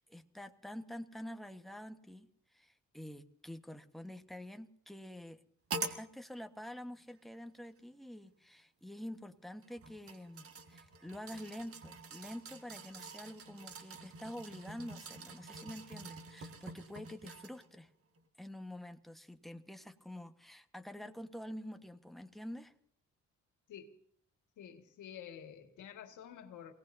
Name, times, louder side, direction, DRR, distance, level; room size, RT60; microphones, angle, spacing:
voice 1, 0.0-5.4 5.7-17.9 18.4-22.7, left 1 dB, ahead, 1.3 m, -47 dB
sound 1, 5.7-6.0 7.1-7.2 9.6-17.7 18.2-18.3, right 4 dB, 50° right, 1.8 m, -46 dB
voice 2, 24.6-26.7, left 9 dB, 80° left, 1.9 m, -50 dB
28.5 x 18.5 x 2.7 m
cardioid pair, 90°, 30 cm